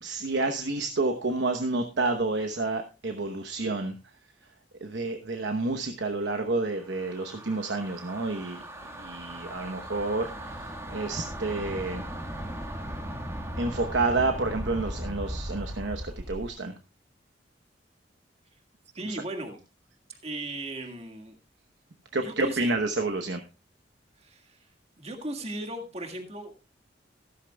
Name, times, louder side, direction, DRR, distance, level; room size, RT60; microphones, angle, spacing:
voice 1, 0.0-3.9 4.8-8.6 9.0-12.0 13.6-16.7 19.1-19.2 22.1-23.4, right 3 dB, 75° right, 5 dB, 1.0 m, -29 dB
sound 1, 6.8-16.5, equal, 15° right, 1.6 m, -38 dB
voice 2, 18.9-19.6 20.2-21.3 22.1-22.7 24.2-24.7 25.0-26.5, right 1 dB, 35° right, 4 dB, 1.8 m, -37 dB
14.0 x 13.0 x 2.3 m, 0.29 s
head